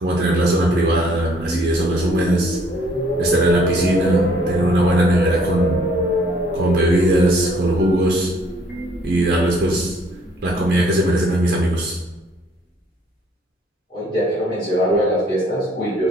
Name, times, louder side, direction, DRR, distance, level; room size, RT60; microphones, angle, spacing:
voice 1, 0.0-2.6 3.2-5.8 6.5-8.3 9.0-10.0 10.4-12.0, right 1 dB, 50° right, -2 dB, 0.4 m, -19 dB
sound 1, 0.9-11.0, equal, 90° left, 0.9 m, -25 dB
sound 2, 2.9-8.4 8.7-8.9, right 2 dB, 45° left, 0.5 m, -35 dB
voice 2, 13.9-16.1, equal, 25° left, -12 dB, 1.3 m, -21 dB
3.9 x 2.3 x 2.7 m, 1.2 s
head